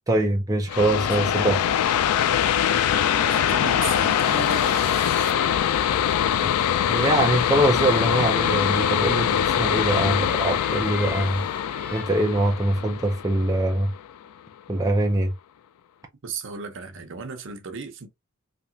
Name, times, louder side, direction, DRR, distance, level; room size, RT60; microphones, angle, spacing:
voice 1, 0.1-1.6 6.4-6.5 6.9-11.4 11.9-13.9 14.7-15.3, right 1 dB, 15° right, 0.5 m, -23 dB
sound 1, 0.7-14.1, left 9 dB, 90° left, 0.3 m, -23 dB
sound 2, 2.5-12.0, left 3 dB, 40° left, 0.6 m, -39 dB
sound 3, 2.7-5.3, left 4 dB, 70° left, 1.7 m, -40 dB
voice 2, 3.2-4.9 16.2-18.1, right 5 dB, 60° right, 0.8 m, -35 dB
3.3 x 2.9 x 2.7 m
head